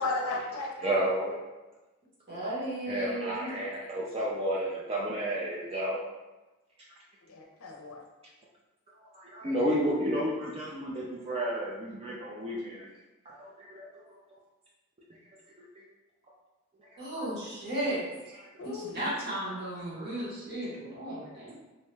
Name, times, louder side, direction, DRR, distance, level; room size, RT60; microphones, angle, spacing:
voice 1, 0.0-1.0 7.3-8.0 18.6-19.0, left 3 dB, 70° left, 1 dB, 0.5 m, -34 dB
voice 2, 0.8-1.3 2.4-2.5 2.9-6.0 9.0-12.9 13.3-14.0 17.2-17.3, right 1 dB, 25° right, -4 dB, 0.3 m, -31 dB
voice 3, 2.3-3.5 17.0-18.0 18.3-21.6, right 1 dB, 50° right, -8 dB, 1.1 m, -35 dB
2.7 x 2.2 x 3.2 m, 1.1 s
head